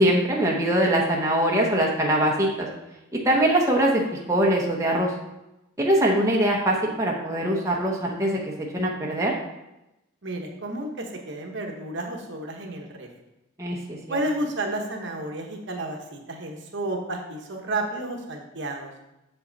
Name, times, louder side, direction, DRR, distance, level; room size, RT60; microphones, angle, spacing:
voice 1, 0.0-2.7 3.1-4.0 4.3-5.1 5.8-8.4 8.7-9.3 13.6-14.2, right 1 dB, 15° right, -3 dB, 0.8 m, -22 dB
voice 2, 10.2-13.1 14.1-18.9, right 2 dB, 55° right, 2 dB, 1.0 m, -31 dB
7.1 x 5.7 x 3.9 m, 0.94 s
head